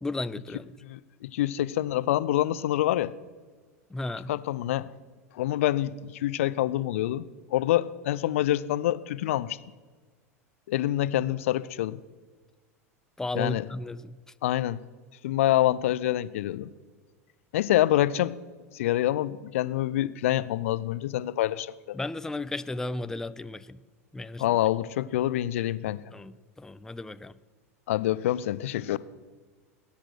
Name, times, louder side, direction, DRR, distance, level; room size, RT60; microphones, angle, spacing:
voice 1, 0.0-0.7 3.9-4.3 13.2-14.2 21.9-23.8 24.1-24.6 26.1-27.3, left 2 dB, 5° left, 14 dB, 0.5 m, -34 dB
voice 2, 0.8-3.1 4.3-4.9 5.3-9.6 10.7-12.0 13.4-13.6 14.4-14.8 15.2-16.7 17.5-18.3 18.7-22.0 24.4-26.0 27.9-29.0, left 13 dB, 60° left, 17 dB, 0.6 m, -26 dB
19.5 x 10.0 x 6.4 m, 1.5 s
figure-of-eight pair, 85°, 8 cm